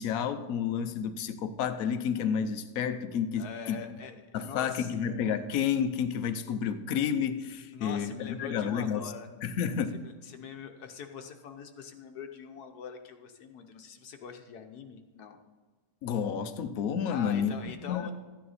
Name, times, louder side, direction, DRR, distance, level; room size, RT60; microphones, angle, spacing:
voice 1, 0.0-4.0 4.3-9.1 9.4-10.1 16.0-17.5 17.9-18.1, left 7 dB, 70° left, 10 dB, 1.2 m, -30 dB
voice 2, 3.4-4.9 7.7-9.3 9.9-15.4 17.1-18.1, left 7 dB, 85° left, 5 dB, 1.4 m, -44 dB
13.5 x 9.5 x 4.1 m, 1.4 s
omnidirectional pair, 1.6 m